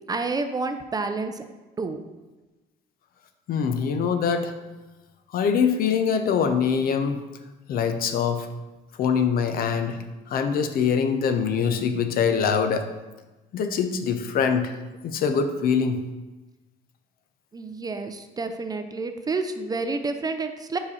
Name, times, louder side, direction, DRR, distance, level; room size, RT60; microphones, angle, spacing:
voice 1, 0.1-1.5 1.8-2.0 17.5-20.8, right 3 dB, 25° right, 7 dB, 0.4 m, -29 dB
voice 2, 3.5-4.5 5.3-7.2 7.7-8.5 9.0-10.0 10.3-12.9 13.5-14.7 15.0-16.0, left 6 dB, 60° left, 7 dB, 0.6 m, -23 dB
5.0 x 4.8 x 4.2 m, 1.1 s
cardioid pair, 110°, 17 cm